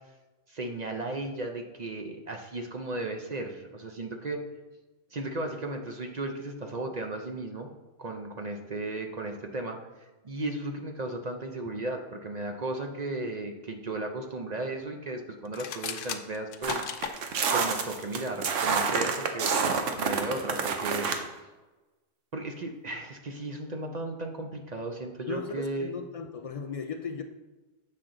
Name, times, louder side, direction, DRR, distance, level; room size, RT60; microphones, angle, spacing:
voice 1, 0.5-4.4 5.1-7.7 8.0-17.2 17.5-21.3 22.3-25.9, right 2 dB, 45° right, 4 dB, 0.6 m, -35 dB
sound 1, 15.5-17.2, left 8 dB, 90° left, 1.0 m, -36 dB
sound 2, 16.6-21.2, right 5 dB, 80° right, 1.1 m, -28 dB
voice 2, 25.3-27.2, left 5 dB, 60° left, 6 dB, 0.3 m, -36 dB
7.6 x 5.8 x 3.8 m, 1.1 s
omnidirectional pair, 1.2 m